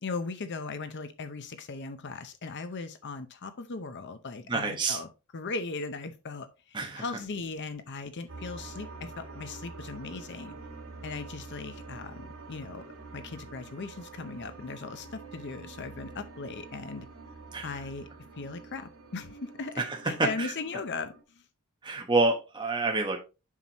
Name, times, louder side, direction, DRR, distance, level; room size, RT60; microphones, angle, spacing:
voice 1, 0.0-10.6 11.0-12.8 13.1-17.1 17.6-18.1 18.3-21.4, left 4 dB, 55° left, 0.7 m, -38 dB
voice 2, 4.5-5.0 6.7-7.0 17.5-17.7 19.8-20.0 20.4-20.5 21.8-23.2, right 3 dB, 20° right, 1.0 m, -28 dB
sound 1, 8.3-21.2, right 3 dB, 75° right, 2.2 m, -46 dB
7.3 x 5.8 x 2.9 m
head